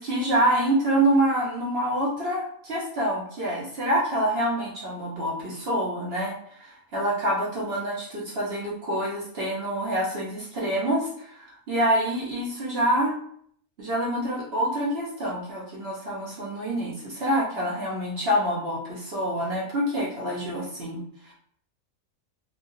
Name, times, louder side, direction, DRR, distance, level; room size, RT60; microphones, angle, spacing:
voice 1, 0.0-13.1 13.8-21.3, right 1 dB, 55° right, -5 dB, 0.9 m, -26 dB
3.2 x 2.2 x 2.6 m, 0.63 s
omnidirectional pair, 1.4 m